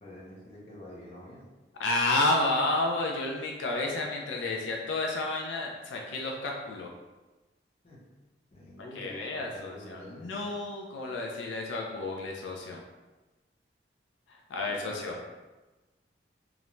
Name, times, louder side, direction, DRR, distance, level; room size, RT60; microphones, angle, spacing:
voice 1, 0.0-1.5 7.8-8.0 8.5-10.5 14.7-15.3, left 1 dB, 35° left, -5 dB, 0.6 m, -47 dB
voice 2, 1.8-6.9 9.0-12.8 14.5-15.1, left 2 dB, 90° left, 0 dB, 0.4 m, -31 dB
2.4 x 2.1 x 3.0 m, 1.2 s
head